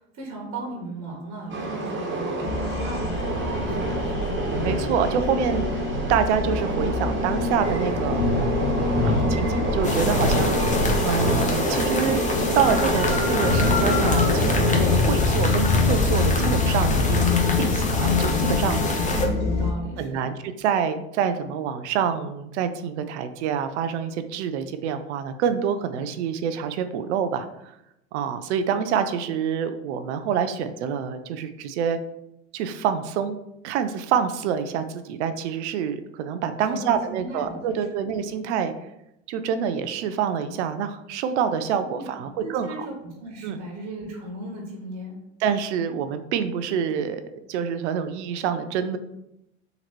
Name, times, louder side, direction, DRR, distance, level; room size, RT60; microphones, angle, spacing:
voice 1, 0.0-4.4 19.0-20.3 36.6-38.1 41.9-42.1 42.4-42.9 43.2-45.2, right 2 dB, 55° right, -2 dB, 1.3 m, -36 dB
Train, 1.5-15.0, right 2 dB, 35° right, 1.3 m, -28 dB
sound 1, 2.4-19.7, left 3 dB, 85° left, 0.6 m, -25 dB
voice 2, 4.6-5.7 6.1-8.3 9.0-10.6 11.0-12.2 12.5-14.8 15.0-19.0 20.0-27.7 28.1-32.0 32.5-33.4 33.6-38.7 39.3-42.9 43.4-43.6 45.4-47.2 47.5-49.0, right 7 dB, 75° right, 10 dB, 0.5 m, -26 dB
sound 2, 9.8-19.3, left 3 dB, 20° left, 0.9 m, -27 dB
3.8 x 2.9 x 4.3 m, 0.85 s
hypercardioid pair, 75°, 35 cm